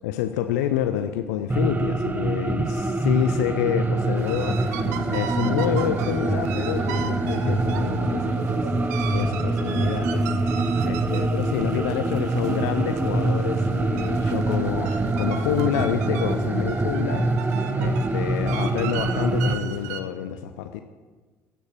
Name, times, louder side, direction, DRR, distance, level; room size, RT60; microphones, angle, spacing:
voice 1, 0.0-17.3 17.7-20.8, left 11 dB, 70° left, 9 dB, 0.7 m, -28 dB
sound 1, 1.5-19.5, right 2 dB, 20° right, 1.3 m, -25 dB
sound 2, 4.2-20.0, right 9 dB, 70° right, 0.8 m, -35 dB
16.0 x 10.0 x 6.3 m, 1.4 s
figure-of-eight pair, 50°, 9 cm